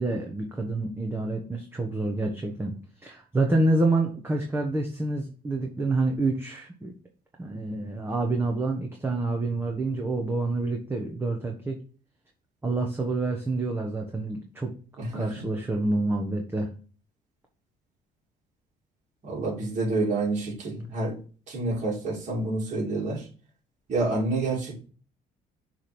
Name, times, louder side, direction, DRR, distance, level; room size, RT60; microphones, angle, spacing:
voice 1, 0.0-6.9 7.4-11.8 12.6-14.7 15.1-16.7, right 2 dB, 15° right, 1 dB, 1.1 m, -28 dB
voice 2, 19.2-21.1 21.5-23.3 23.9-24.8, right 2 dB, 45° right, -2 dB, 2.9 m, -28 dB
6.4 x 3.4 x 6.0 m, 0.39 s
cardioid pair, 110°, 17 cm